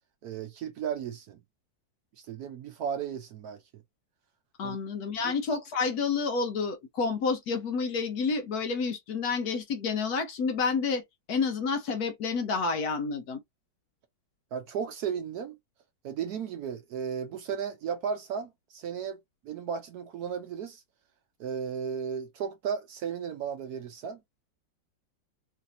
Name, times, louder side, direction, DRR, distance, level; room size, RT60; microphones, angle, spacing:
voice 1, 0.2-1.4 2.3-3.8 4.6-4.8 5.2-5.3 14.5-15.6 16.0-19.2 19.4-20.8 21.4-24.2, right 7 dB, 70° right, 1.0 m, -35 dB
voice 2, 4.6-11.0 11.3-13.4, left 4 dB, 65° left, 1.1 m, -29 dB
3.2 x 2.7 x 2.6 m
omnidirectional pair, 2.0 m